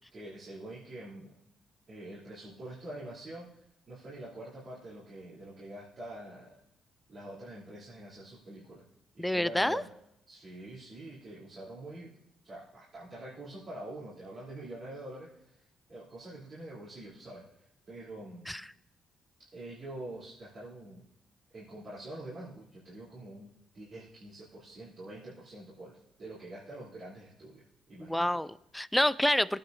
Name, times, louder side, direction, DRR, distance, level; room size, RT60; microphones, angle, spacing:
voice 1, 0.1-1.3 1.9-3.5 3.9-6.6 7.1-8.9 9.1-9.9 10.3-12.1 12.4-15.6 15.9-17.4 17.9-18.5 19.4-21.0 21.5-28.4, right 1 dB, 50° right, -8 dB, 3.4 m, -45 dB
voice 2, 9.2-9.8 18.5-18.6 28.0-29.6, left 1 dB, 5° left, 17 dB, 0.3 m, -28 dB
18.0 x 9.2 x 2.7 m, 0.77 s
cardioid pair, 90°, 0 cm